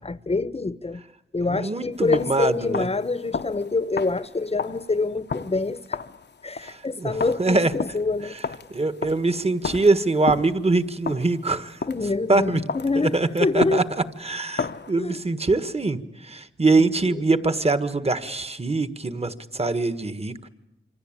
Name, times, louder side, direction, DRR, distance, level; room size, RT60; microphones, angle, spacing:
voice 1, 0.0-1.0 1.3-6.0 6.4-8.4 11.9-13.8 15.0-15.2 17.0-17.1, left 3 dB, 30° left, 1.0 m, -26 dB
voice 2, 1.4-2.9 6.6-7.7 8.7-11.8 12.3-12.6 12.9-13.8 14.2-20.5, right 3 dB, 30° right, 1.6 m, -23 dB
sound 1, 1.9-12.2 12.7-14.9, left 5 dB, 55° left, 1.0 m, -34 dB
26.5 x 25.5 x 8.9 m
wide cardioid pair, 80°, 21 cm